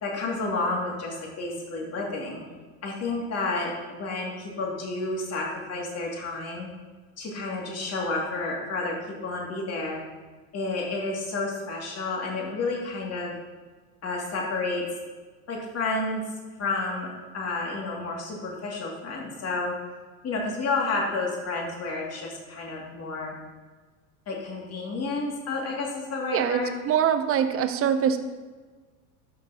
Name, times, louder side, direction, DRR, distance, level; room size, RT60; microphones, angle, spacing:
voice 1, 0.0-2.4 2.8-6.7 7.2-10.0 10.5-13.3 14.0-14.8 15.5-16.2 16.6-19.7 20.2-23.3 24.3-26.7, left 3 dB, 35° left, -2 dB, 2.5 m, -30 dB
voice 2, 26.9-28.2, right 8 dB, 30° right, 9 dB, 0.7 m, -23 dB
12.0 x 5.9 x 2.9 m, 1.4 s
hypercardioid pair, 95°, 45 cm